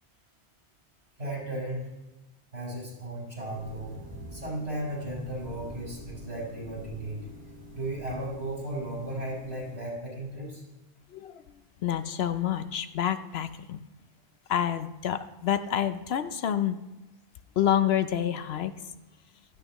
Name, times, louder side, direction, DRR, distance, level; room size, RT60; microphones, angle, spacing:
voice 1, 1.2-2.0 2.5-4.0 4.3-7.3 7.7-10.6, right 1 dB, 65° right, -5 dB, 5.0 m, -35 dB
sound 1, 3.5-9.8, equal, 5° left, 4.2 m, -46 dB
voice 2, 11.1-11.4 11.8-13.8 14.5-16.8 17.6-18.7, left 10 dB, 70° left, 11 dB, 0.8 m, -28 dB
16.0 x 13.0 x 3.0 m, 1.0 s
omnidirectional pair, 1.1 m